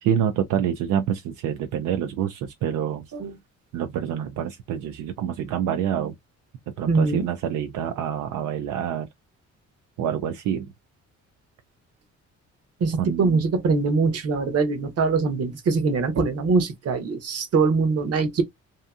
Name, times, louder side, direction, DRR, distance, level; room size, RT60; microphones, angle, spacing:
voice 1, 0.0-3.1 3.7-6.1 6.7-9.1 10.0-10.7 13.0-13.4, right 9 dB, 80° right, 0.5 m, -27 dB
voice 2, 6.9-7.3 12.8-18.4, right 4 dB, 55° right, 0.9 m, -22 dB
2.8 x 2.5 x 2.3 m
cardioid pair, 90°, 30 cm